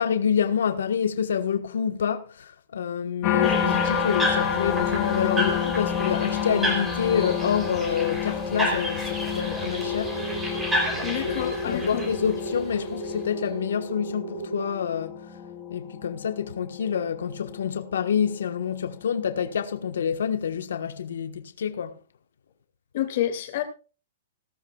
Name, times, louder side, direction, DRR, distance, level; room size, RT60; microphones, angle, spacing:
voice 1, 0.0-10.2 10.9-15.3 15.7-22.0, left 7 dB, 80° left, 1.3 m, -27 dB
sound 1, 3.2-18.4 18.9-19.4, left 8 dB, 20° left, 1.7 m, -30 dB
voice 2, 3.3-3.8 11.0-12.1 22.9-23.6, left 12 dB, 40° left, 2.4 m, -29 dB
sound 2, 3.4-13.1, equal, 5° right, 3.4 m, -32 dB
sound 3, 9.6-14.6, right 4 dB, 85° right, 3.9 m, -36 dB
17.5 x 13.5 x 2.4 m
hypercardioid pair, 180°, 0 cm